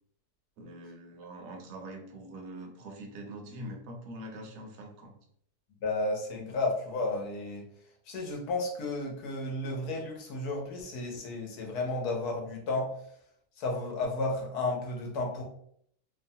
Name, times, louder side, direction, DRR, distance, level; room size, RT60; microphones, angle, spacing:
voice 1, 0.6-5.1, right 1 dB, 70° right, 2 dB, 0.9 m, -44 dB
voice 2, 5.8-7.7 8.1-12.9 13.6-15.4, left 2 dB, 80° left, 0 dB, 1.2 m, -32 dB
3.0 x 2.1 x 2.6 m, 0.67 s
omnidirectional pair, 1.7 m